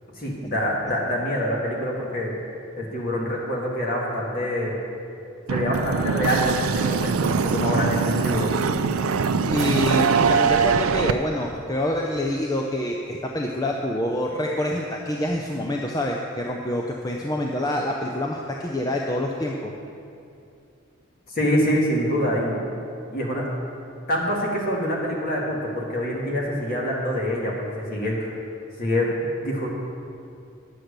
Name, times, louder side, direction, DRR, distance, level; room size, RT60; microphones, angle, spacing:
voice 1, 0.2-2.3 2.8-4.8 5.5-8.6 21.3-22.6 23.1-23.5 24.1-28.3 28.8-29.7, equal, 45° left, -3 dB, 2.1 m, -25 dB
sound 1, 5.5-11.1, right 5 dB, 90° right, 0.4 m, -22 dB
voice 2, 9.4-19.7, left 1 dB, 20° left, 0 dB, 0.5 m, -26 dB
10.0 x 7.7 x 6.6 m, 2.5 s
head